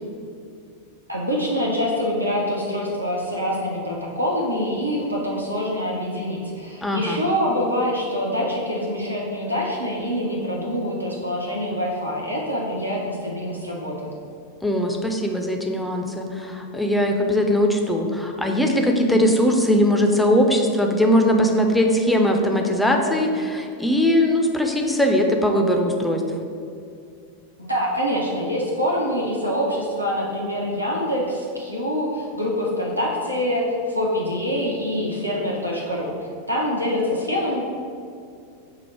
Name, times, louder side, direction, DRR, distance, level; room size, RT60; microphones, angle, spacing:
voice 1, 1.1-14.1 27.6-37.6, equal, 90° right, -4 dB, 0.5 m, -25 dB
voice 2, 6.8-7.2 14.6-26.2, equal, 5° left, 2 dB, 0.4 m, -20 dB
4.7 x 2.0 x 4.3 m, 2.4 s
figure-of-eight pair, 90°, 0 cm